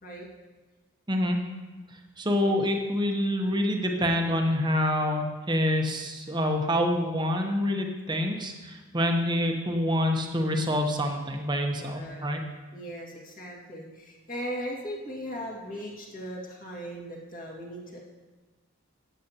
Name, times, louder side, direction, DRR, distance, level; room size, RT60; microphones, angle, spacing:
voice 1, 1.1-1.4 2.2-12.4, left 1 dB, 20° right, 3 dB, 0.9 m, -26 dB
voice 2, 11.8-12.2 12.7-18.0, equal, 40° left, -3 dB, 2.1 m, -38 dB
13.0 x 9.2 x 2.9 m, 1.3 s
head